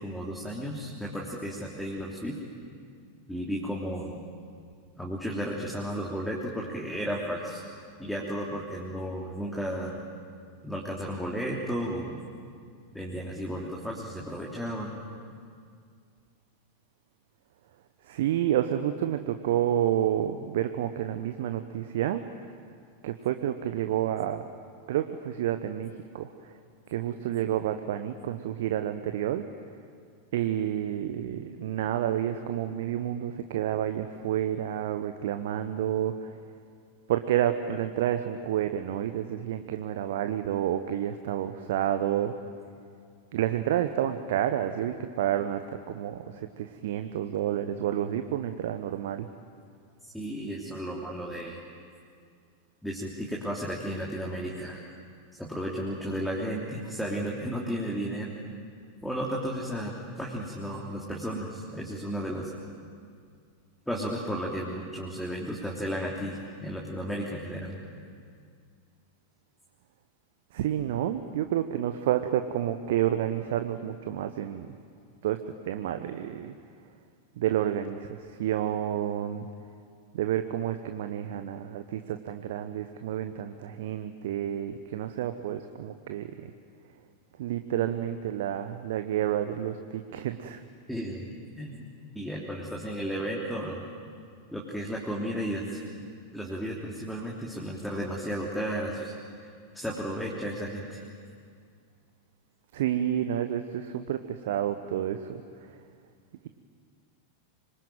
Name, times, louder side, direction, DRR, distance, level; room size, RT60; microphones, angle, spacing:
voice 1, 0.0-2.4 3.3-4.2 5.0-7.6 8.0-10.0 10.6-12.2 12.9-15.0 50.1-51.6 52.8-54.8 55.4-58.3 59.0-62.5 63.9-67.8 90.9-91.3 91.6-91.8 92.1-93.8 94.5-95.8 96.3-99.1 99.4-99.5 99.7-101.0, equal, ahead, -3 dB, 3.3 m, -33 dB
voice 2, 18.1-22.2 23.0-24.5 24.9-26.5 26.9-29.4 30.3-36.3 37.1-42.3 43.3-49.3 70.5-74.7 75.2-75.4 75.6-76.5 77.4-79.5 80.1-86.5 87.4-90.6 102.7-105.4, right 11 dB, 55° right, 8 dB, 1.1 m, -29 dB
26.0 x 23.0 x 9.2 m, 2.3 s
figure-of-eight pair, 90°, 0 cm